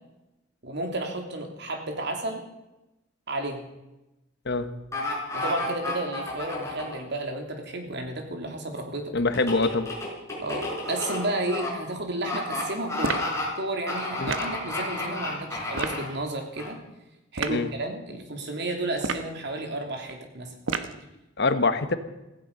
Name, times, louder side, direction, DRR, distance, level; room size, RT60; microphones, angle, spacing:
voice 1, 0.6-2.4 3.3-3.6 5.3-9.1 10.4-13.2 13.6-16.8 17.3-20.5, right 2 dB, 60° right, 3 dB, 3.0 m, -32 dB
sound 1, 4.9-7.0 9.3-11.7 12.2-12.6 12.9-13.5 13.9-16.1 16.6-16.7, left 2 dB, 15° left, 6.0 m, -31 dB
voice 2, 9.1-9.9 14.2-14.3 17.5-17.7 21.4-22.0, left 3 dB, 60° left, 10 dB, 1.2 m, -24 dB
sound 2, 13.0-13.4 14.3-14.6 15.7-16.0 17.3-17.6 19.0-19.4 20.7-21.0, right 4 dB, 80° right, 1.2 m, -30 dB
16.5 x 15.5 x 5.4 m, 0.96 s
head